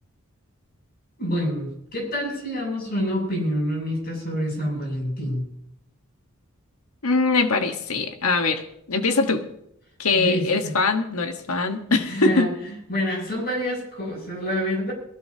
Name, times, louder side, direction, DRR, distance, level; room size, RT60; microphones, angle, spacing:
voice 1, 1.2-5.5 10.1-10.7 11.9-12.5 12.9-14.9, equal, 45° left, -1 dB, 7.6 m, -27 dB
voice 2, 7.0-8.6 8.9-9.4 10.0-12.5, left 3 dB, 90° left, 6 dB, 1.4 m, -22 dB
21.5 x 16.0 x 2.9 m, 0.75 s
head